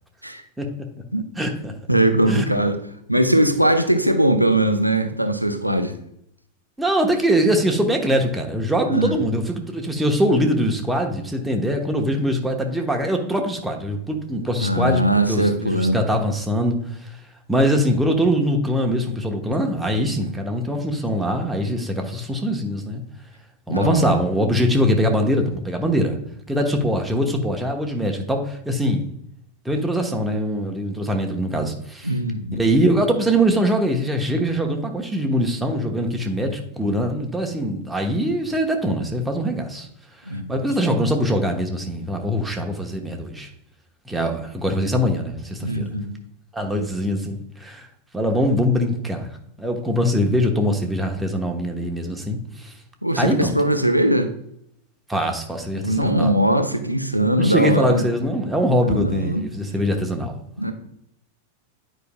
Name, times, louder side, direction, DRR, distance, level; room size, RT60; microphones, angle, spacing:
voice 1, 1.4-1.7 2.3-2.4 6.8-17.1 17.5-23.0 23.7-26.2 26.5-29.1 29.6-32.1 32.5-39.9 40.3-43.5 44.1-45.9 46.5-47.9 48.1-49.3 49.6-52.7 53.2-53.5 55.1-56.3 57.4-60.4, equal, 5° right, 2 dB, 1.0 m, -22 dB
voice 2, 1.9-2.8 3.1-6.0 8.9-9.1 14.6-16.0 20.2-20.4 23.7-24.1 32.0-32.7 40.3-40.6 40.8-40.9 45.6-46.1 53.0-54.3 55.8-58.1 58.8-59.5 60.6-60.7, right 1 dB, 90° right, 7 dB, 0.6 m, -20 dB
9.6 x 4.9 x 2.2 m, 0.74 s
figure-of-eight pair, 90°, 0 cm